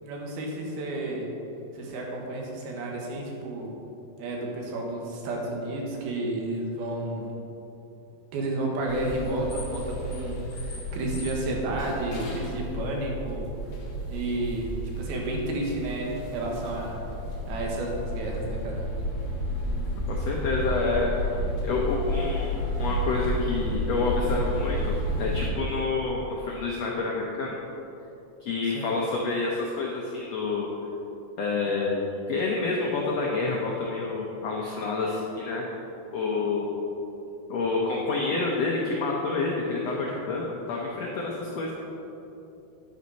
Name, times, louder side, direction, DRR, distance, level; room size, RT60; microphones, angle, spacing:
voice 1, 0.0-1.3 1.7-3.7 4.2-7.3 8.3-13.5 14.1-17.0 17.5-18.8 28.7-28.9, right 2 dB, 85° right, -1 dB, 3.5 m, -31 dB
sound 1, 8.9-25.5, equal, 50° left, 2.0 m, -31 dB
voice 2, 20.1-22.5 22.8-24.9 25.2-27.5 28.4-30.7 31.4-32.0 32.3-35.7 36.1-36.8 37.5-41.7, left 3 dB, 80° left, -2 dB, 1.5 m, -28 dB
10.5 x 9.7 x 4.1 m, 3.0 s
omnidirectional pair, 4.2 m